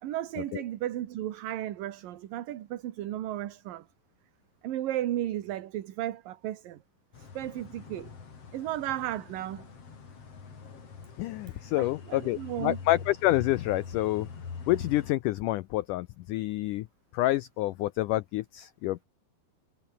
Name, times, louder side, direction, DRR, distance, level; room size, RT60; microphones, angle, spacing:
voice 1, 0.0-3.9 4.6-6.8 7.2-8.1 8.5-9.7 11.8-12.8, right 13 dB, 65° right, 3.0 m, -34 dB
sound 1, 7.1-15.1, left 5 dB, 40° left, 4.2 m, -44 dB
voice 2, 11.2-14.3 14.7-16.9 17.1-19.1, left 16 dB, 85° left, 1.8 m, -28 dB
omnidirectional pair, 4.4 m